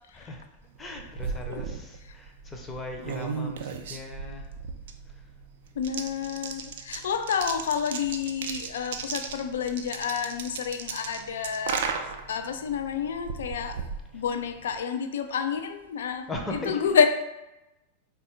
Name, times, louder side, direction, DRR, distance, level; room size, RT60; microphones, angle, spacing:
voice 1, 0.1-0.4 0.8-4.5 6.9-7.1 16.3-17.1, left 2 dB, 15° left, 2 dB, 0.6 m, -38 dB
sound 1, 0.7-14.8, right 6 dB, 60° right, 0.4 m, -36 dB
voice 2, 5.8-11.9 12.3-13.8 14.1-17.1, left 7 dB, 60° left, 8 dB, 0.3 m, -29 dB
4.0 x 2.4 x 3.7 m, 0.97 s
figure-of-eight pair, 90°, 0 cm